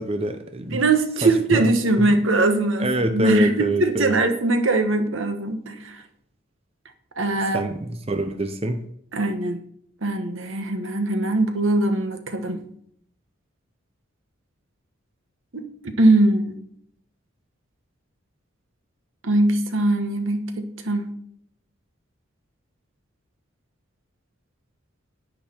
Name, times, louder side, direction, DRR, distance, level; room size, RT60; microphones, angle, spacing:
voice 1, 0.0-0.8 1.2-1.6 2.1-2.2 2.8-4.2 7.5-8.8, right 1 dB, 30° right, 7 dB, 0.7 m, -25 dB
voice 2, 0.7-6.0 7.2-7.6 9.1-9.6 10.0-12.6 15.5-16.6 19.2-21.1, right 2 dB, 75° right, 7 dB, 1.3 m, -21 dB
10.0 x 9.3 x 4.5 m, 0.68 s
head